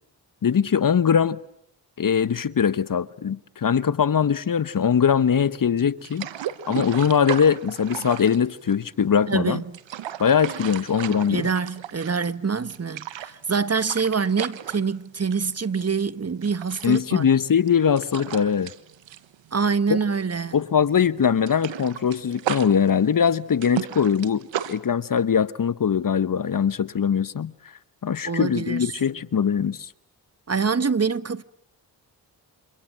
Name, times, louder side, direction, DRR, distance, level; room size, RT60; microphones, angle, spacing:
voice 1, 0.4-1.4 2.0-6.3 6.7-9.6 10.2-11.5 16.8-18.7 19.9-20.0 20.5-27.5 28.0-29.9, left 7 dB, 50° left, 1.1 m, -21 dB
sound 1, 6.0-9.1 9.6-12.4 12.7-15.5 15.9-16.0 16.4-20.2 20.5-20.7 21.0-24.8, right 11 dB, 90° right, 1.4 m, -35 dB
voice 2, 9.3-9.6 11.3-17.2 19.5-20.5 28.2-28.9 30.5-31.4, right 5 dB, 35° right, 1.3 m, -25 dB
28.5 x 27.5 x 7.5 m
supercardioid pair, 45°, 44 cm